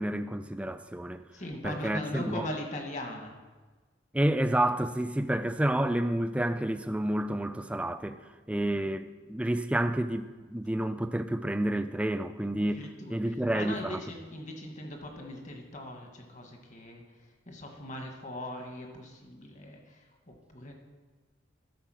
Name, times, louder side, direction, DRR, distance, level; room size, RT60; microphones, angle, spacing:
voice 1, 0.0-1.2 1.6-2.5 4.1-8.2 8.5-12.8 13.1-14.0, right 1 dB, 5° right, 10 dB, 0.3 m, -29 dB
voice 2, 1.3-3.3 12.7-17.0 17.5-20.7, left 1 dB, 40° left, 3 dB, 1.3 m, -40 dB
12.5 x 4.9 x 6.2 m, 1.3 s
head